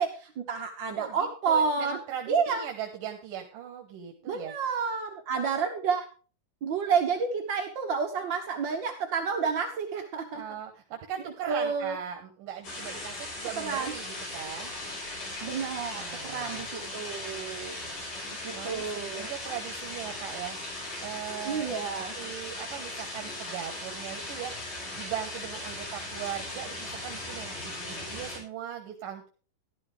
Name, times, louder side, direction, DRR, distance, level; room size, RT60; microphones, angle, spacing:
voice 1, 0.0-2.0 2.3-2.6 4.3-6.0 6.6-10.4 11.5-11.9 13.6-13.9 15.4-17.7 18.3-19.3 21.4-22.1, right 5 dB, 65° right, 4 dB, 1.1 m, -30 dB
voice 2, 1.0-4.5 10.3-14.7 15.9-16.7 18.5-20.6 21.0-21.7 22.0-24.5 24.9-29.3, right 10 dB, 85° right, 3 dB, 2.9 m, -39 dB
sound 1, 12.6-28.4, left 2 dB, 65° left, 7.5 m, -38 dB
12.5 x 12.0 x 3.3 m, 0.37 s
omnidirectional pair, 3.8 m